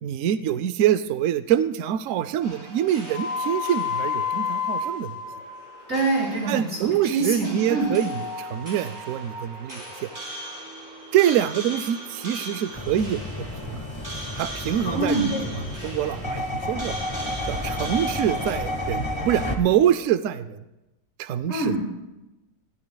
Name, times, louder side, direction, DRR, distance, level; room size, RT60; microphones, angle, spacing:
voice 1, 0.0-5.1 6.5-8.1 8.4-10.1 11.1-13.8 14.4-17.0 17.5-20.6 21.2-21.7, right 10 dB, 75° right, 12 dB, 0.7 m, -25 dB
sound 1, 2.4-18.5, left 3 dB, 30° right, 4.9 m, -34 dB
voice 2, 5.9-7.9 14.9-15.3 21.5-21.8, right 2 dB, 45° right, -4 dB, 6.5 m, -25 dB
sound 2, 12.7-19.6, left 1 dB, 20° left, 1.0 m, -31 dB
20.0 x 16.5 x 2.3 m, 0.99 s
omnidirectional pair, 1.9 m